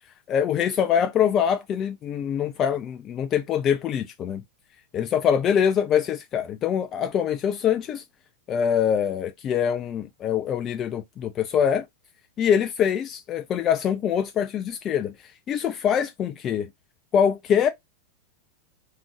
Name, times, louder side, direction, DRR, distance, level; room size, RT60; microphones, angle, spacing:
voice 1, 0.3-4.4 4.9-8.0 8.5-11.9 12.4-15.1 15.5-16.7 17.1-17.7, left 8 dB, 30° left, 0.3 m, -24 dB
3.6 x 2.5 x 3.0 m
figure-of-eight pair, 90°, 0 cm